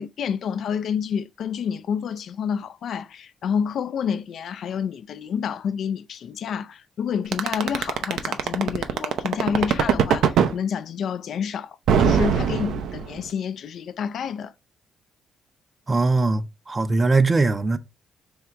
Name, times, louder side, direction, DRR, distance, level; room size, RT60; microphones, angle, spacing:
voice 1, 0.0-14.5, left 7 dB, 65° left, 0.3 m, -29 dB
sound 1, 7.3-10.5 11.9-13.3, right 8 dB, 80° right, 0.5 m, -20 dB
voice 2, 15.9-17.8, right 3 dB, 30° right, 0.5 m, -21 dB
3.5 x 2.8 x 4.4 m
cardioid pair, 90°, 0 cm